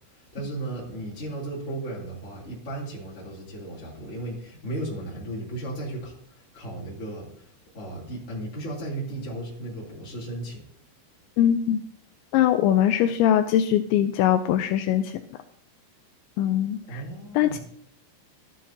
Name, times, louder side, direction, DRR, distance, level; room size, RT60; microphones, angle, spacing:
voice 1, 0.3-7.3 7.7-10.6 16.8-17.6, right 2 dB, 20° left, -5 dB, 2.5 m, -35 dB
voice 2, 11.4-11.8 12.3-15.1 16.4-17.0 17.4-17.6, left 10 dB, 90° left, 7 dB, 2.6 m, -21 dB
13.0 x 11.0 x 2.8 m, 0.64 s
omnidirectional pair, 5.7 m